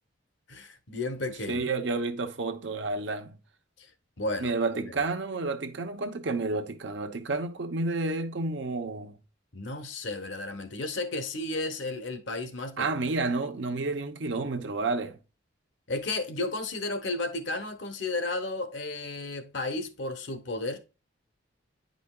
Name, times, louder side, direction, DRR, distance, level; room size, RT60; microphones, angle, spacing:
voice 1, 0.5-1.7 3.8-3.9 4.2-4.9 9.5-12.9 15.9-20.8, left 2 dB, 65° left, 1.0 m, -33 dB
voice 2, 1.5-3.4 4.4-9.1 12.8-15.2, right 3 dB, 65° right, 0.8 m, -30 dB
9.5 x 5.1 x 2.3 m
head